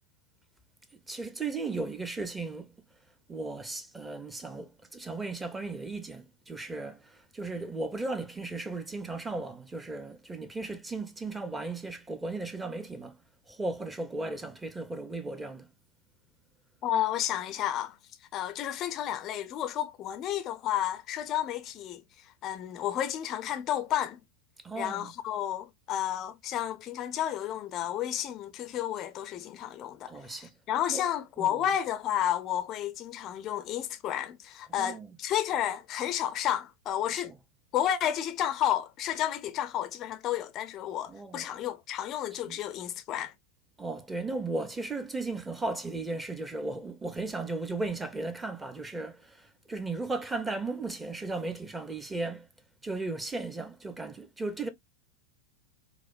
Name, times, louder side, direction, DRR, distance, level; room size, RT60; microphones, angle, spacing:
voice 1, 1.1-2.7 3.3-13.1 13.5-15.7 24.6-25.1 30.1-30.5 30.9-31.0 31.4-31.6 34.8-35.1 37.1-37.3 41.1-41.5 42.4-42.6 43.8-52.5 52.8-54.7, right 3 dB, 10° right, 0.6 m, -36 dB
voice 2, 16.8-18.0 18.3-24.2 24.8-37.3 37.7-43.3, left 11 dB, 35° left, 0.4 m, -31 dB
4.7 x 2.0 x 2.4 m
figure-of-eight pair, 90°, 0 cm